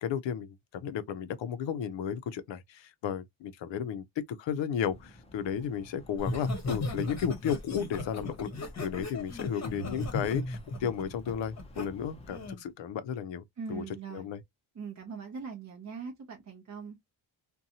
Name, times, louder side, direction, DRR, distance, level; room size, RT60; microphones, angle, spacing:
voice 1, 0.0-4.0 4.4-8.5 8.8-13.4 13.7-13.8 14.1-14.4, left 8 dB, 65° left, 0.5 m, -33 dB
sound 1, 4.8-12.5, left 1 dB, 15° left, 0.4 m, -54 dB
Laughter, 6.2-11.9 12.3-12.6, left 2 dB, 35° left, 0.9 m, -36 dB
voice 2, 13.6-14.3 14.7-17.0, right 5 dB, 35° right, 0.6 m, -41 dB
2.6 x 2.2 x 2.7 m
wide cardioid pair, 175°, 49 cm